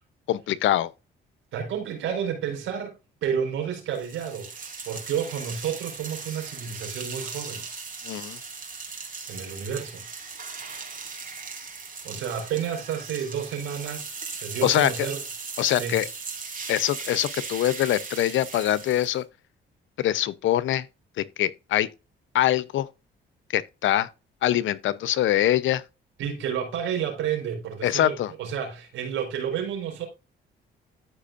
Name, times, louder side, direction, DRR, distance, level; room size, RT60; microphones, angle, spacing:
voice 1, 0.3-0.9 8.0-8.4 14.6-14.9 15.6-16.1 16.7-19.2 20.0-20.9 21.2-21.9 22.3-22.9 23.5-24.1 24.4-25.8 27.8-28.3, left 12 dB, 75° left, 0.8 m, -23 dB
voice 2, 1.5-3.0 3.2-7.6 9.3-10.0 12.0-14.1 14.4-15.2 15.8-16.0 26.2-30.1, right 8 dB, 85° right, 4.7 m, -30 dB
sound 1, 3.9-19.2, right 5 dB, 45° right, 3.4 m, -38 dB
14.0 x 5.2 x 2.6 m
cardioid pair, 90°, 20 cm